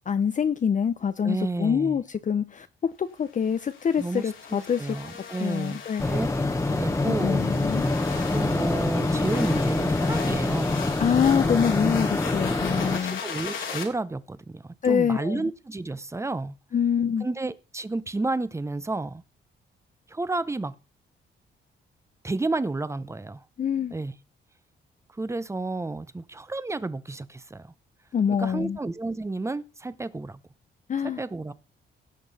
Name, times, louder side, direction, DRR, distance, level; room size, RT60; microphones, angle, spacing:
voice 1, 0.1-5.0 5.4-6.2 7.0-7.9 11.0-13.2 14.8-15.4 16.7-17.3 23.6-23.9 28.1-28.8 30.9-31.2, left 7 dB, 40° left, 0.6 m, -25 dB
voice 2, 1.2-2.0 4.0-5.8 6.1-6.3 6.7-7.5 8.3-10.8 13.2-16.6 17.2-19.2 20.1-20.7 22.2-23.4 23.9-24.1 25.2-27.7 28.3-30.4 31.0-31.5, right 2 dB, 15° right, 0.7 m, -31 dB
sound 1, 3.4-13.8, left 6 dB, 80° left, 2.7 m, -38 dB
sound 2, 6.0-13.0, left 2 dB, 15° left, 1.0 m, -25 dB
17.0 x 6.0 x 4.1 m
cardioid pair, 80°, 20 cm